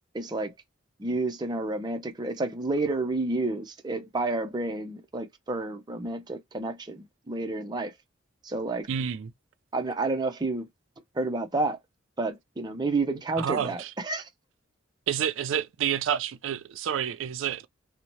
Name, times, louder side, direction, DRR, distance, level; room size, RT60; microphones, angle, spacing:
voice 1, 0.1-0.5 1.0-7.9 8.4-8.9 9.7-10.7 11.1-11.8 12.2-14.3, right 2 dB, 20° right, 0.5 m, -30 dB
voice 2, 8.9-9.3 13.4-13.9 15.1-17.7, right 9 dB, 85° right, 0.4 m, -29 dB
2.8 x 2.1 x 3.0 m
head